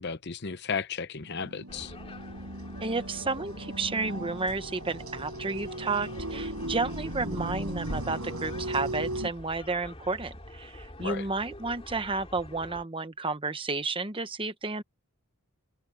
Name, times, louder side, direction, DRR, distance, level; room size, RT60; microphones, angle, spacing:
voice 1, 0.0-1.9 11.0-11.3, left 5 dB, 50° left, 0.8 m, -34 dB
sound 1, 1.2-9.3, right 1 dB, 75° right, 6.8 m, -37 dB
sound 2, 1.7-12.8, left 1 dB, 25° left, 2.9 m, -47 dB
voice 2, 2.8-14.8, right 3 dB, 25° right, 1.1 m, -32 dB
head